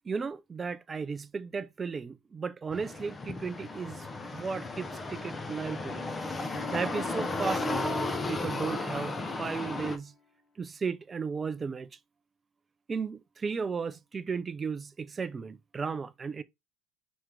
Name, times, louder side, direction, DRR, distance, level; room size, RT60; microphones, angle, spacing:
voice 1, 0.1-4.1 4.3-6.1 6.7-7.9 8.3-10.1 10.6-11.9 12.9-16.4, right 5 dB, 25° right, 0.5 m, -35 dB
sound 1, 2.7-10.0, left 2 dB, 20° left, 0.6 m, -34 dB
sound 2, 6.5-9.8, left 4 dB, 35° left, 1.1 m, -43 dB
4.4 x 3.2 x 3.7 m
supercardioid pair, 110°, 0 cm